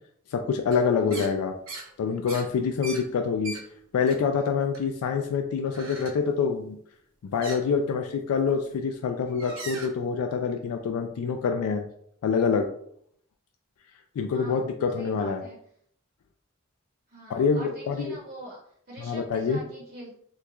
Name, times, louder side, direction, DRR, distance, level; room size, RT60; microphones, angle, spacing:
voice 1, 0.3-1.5 2.0-3.5 3.9-6.8 7.2-11.8 12.2-12.7 14.2-15.4 17.3-18.2 19.0-19.6, left 5 dB, 85° left, 4 dB, 0.3 m, -26 dB
sound 1, 0.7-0.8 1.1-1.3 1.7-1.9 2.3-3.6 4.1-4.5 4.7-5.3 5.7-6.2 7.4-7.6 8.5-8.7 9.3-9.9, right 2 dB, 75° right, 0.9 m, -39 dB
voice 2, 1.0-1.3 14.3-14.7 14.9-15.6 17.1-18.6 18.9-20.1, right 1 dB, 40° right, -3 dB, 0.7 m, -43 dB
3.5 x 3.0 x 2.3 m, 0.67 s
head